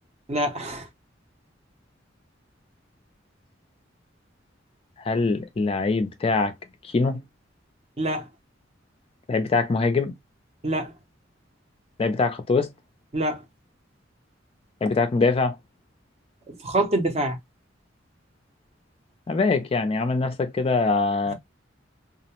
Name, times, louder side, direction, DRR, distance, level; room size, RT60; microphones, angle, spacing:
voice 1, 0.3-0.9 8.0-8.3 10.6-10.9 13.1-13.4 16.5-17.4, right 1 dB, 35° right, 0.6 m, -26 dB
voice 2, 5.0-6.5 6.8-7.2 9.3-10.1 12.0-12.7 14.8-15.6 19.3-21.3, left 3 dB, 30° left, 0.3 m, -23 dB
2.4 x 2.1 x 2.8 m
head